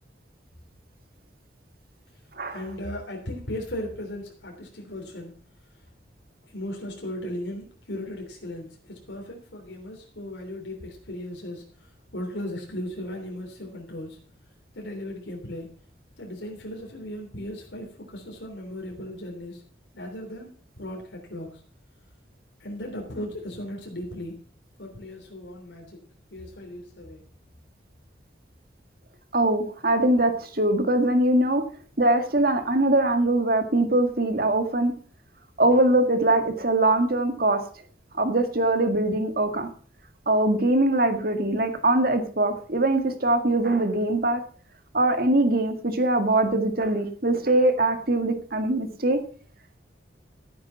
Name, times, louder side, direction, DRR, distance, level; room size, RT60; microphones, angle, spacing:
voice 1, 2.5-5.3 6.5-14.2 14.7-15.7 16.2-19.6 19.9-20.5 20.8-21.6 22.6-24.3 24.8-26.0 26.3-27.2, left 1 dB, 80° left, 0 dB, 3.4 m, -37 dB
voice 2, 29.3-31.6 32.0-34.9 35.6-37.6 38.1-39.7 40.3-44.4 44.9-49.2, right 1 dB, 55° right, 7 dB, 2.0 m, -22 dB
14.0 x 9.6 x 5.8 m, 0.43 s
head